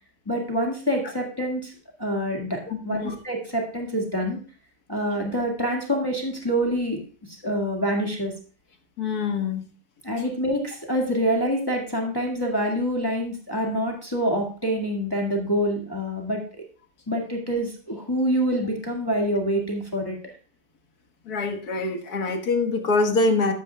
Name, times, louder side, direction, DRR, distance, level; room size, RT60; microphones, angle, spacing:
voice 1, 0.3-1.7 2.0-4.4 4.9-7.0 7.3-8.3 10.0-16.6 17.1-20.3, equal, 15° left, 0 dB, 1.9 m, -26 dB
voice 2, 2.7-3.2 9.0-9.6 21.3-23.5, left 3 dB, 70° left, 4 dB, 2.1 m, -24 dB
14.0 x 12.0 x 2.3 m, 0.39 s
omnidirectional pair, 1.7 m